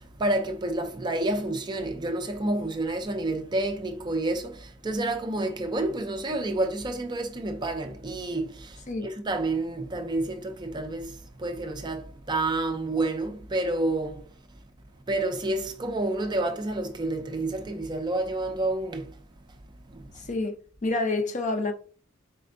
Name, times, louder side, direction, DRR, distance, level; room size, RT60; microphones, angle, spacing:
voice 1, 0.0-14.3 15.1-19.2 19.9-20.1, right 2 dB, 20° right, 0.4 m, -29 dB
voice 2, 20.8-21.7, left 2 dB, 35° left, 0.5 m, -27 dB
4.2 x 3.4 x 2.5 m
head